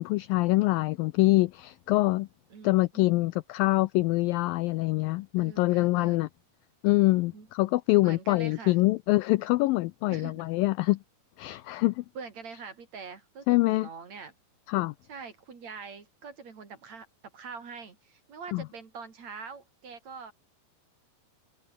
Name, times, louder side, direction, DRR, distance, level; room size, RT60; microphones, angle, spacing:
voice 1, 0.0-2.3 2.6-6.3 6.8-11.0 11.4-12.0 13.5-13.9 14.7-14.9 18.5-18.6, left 20 dB, 90° left, 2.0 m, -25 dB
voice 2, 2.5-3.3 5.4-6.2 7.3-7.5 8.0-8.8 10.1-10.5 12.1-14.3 15.1-17.1 17.3-20.3, right 5 dB, 45° right, 4.3 m, -44 dB
omnidirectional pair, 4.7 m